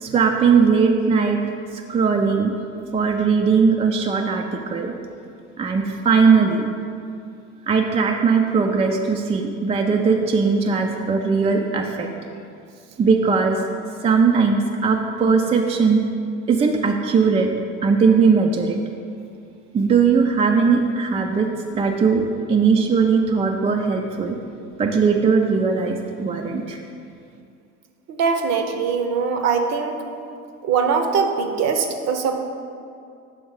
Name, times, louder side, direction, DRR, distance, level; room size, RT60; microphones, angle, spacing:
voice 1, 0.0-1.4 1.7-2.5 2.9-4.9 5.6-6.7 7.7-12.1 13.0-13.6 14.0-16.0 16.5-17.5 17.8-18.8 19.7-21.5 21.7-24.4 24.8-26.8, right 5 dB, 20° right, 3 dB, 0.3 m, -19 dB
voice 2, 28.1-30.0 30.6-32.4, right 5 dB, 45° right, 6 dB, 0.7 m, -22 dB
6.7 x 3.5 x 4.7 m, 2.4 s
hypercardioid pair, 85°, 38 cm